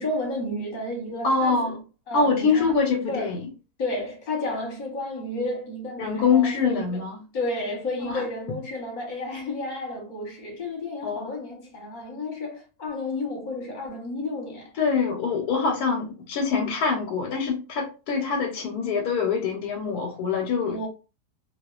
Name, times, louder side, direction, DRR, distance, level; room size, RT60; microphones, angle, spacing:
voice 1, 0.0-1.7 2.1-2.7 3.1-3.3 3.8-7.0 7.3-14.7 20.7-20.9, left 2 dB, 40° left, 0.8 m, -32 dB
voice 2, 1.2-1.8 2.1-3.5 6.0-7.2 8.0-8.6 11.0-11.3 14.8-20.9, left 5 dB, 85° left, 1.1 m, -24 dB
2.3 x 2.3 x 2.3 m
omnidirectional pair, 1.6 m